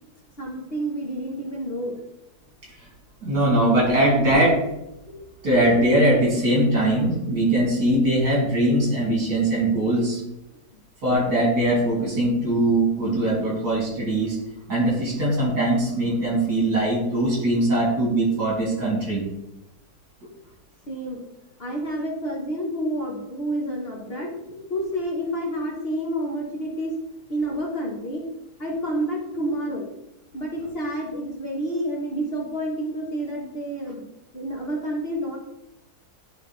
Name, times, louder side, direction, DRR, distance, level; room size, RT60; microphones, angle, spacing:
voice 1, 0.4-2.0 20.9-21.2 21.6-24.3 24.7-26.9 27.3-28.2 28.6-29.9 30.3-34.0 34.3-35.4, right 1 dB, 40° left, -2 dB, 1.3 m, -29 dB
voice 2, 3.2-4.6 5.1-5.2 5.4-10.2 11.0-14.4 14.7-19.2 24.2-24.3, right 1 dB, 75° right, -5 dB, 3.3 m, -21 dB
10.5 x 3.6 x 3.3 m, 0.88 s
omnidirectional pair, 1.8 m